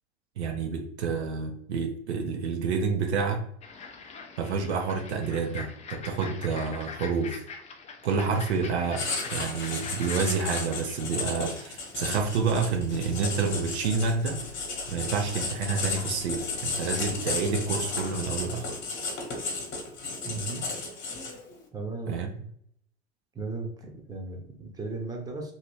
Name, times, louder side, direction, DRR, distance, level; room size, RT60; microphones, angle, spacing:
voice 1, 0.4-3.4 4.4-7.4 8.0-14.4 14.9-18.7 22.1-22.3, right 5 dB, 70° right, 4 dB, 0.6 m, -29 dB
sound 1, 3.6-11.0, left 5 dB, 20° left, 0.5 m, -43 dB
Writing, 9.0-21.5, left 3 dB, 35° left, 1.1 m, -34 dB
sound 2, 12.1-18.6, left 7 dB, 70° left, 0.6 m, -48 dB
voice 2, 20.2-20.7 21.7-22.5 23.3-25.5, right 3 dB, 10° right, 2 dB, 0.8 m, -36 dB
3.0 x 2.7 x 3.0 m, 0.64 s
figure-of-eight pair, 80°, 34 cm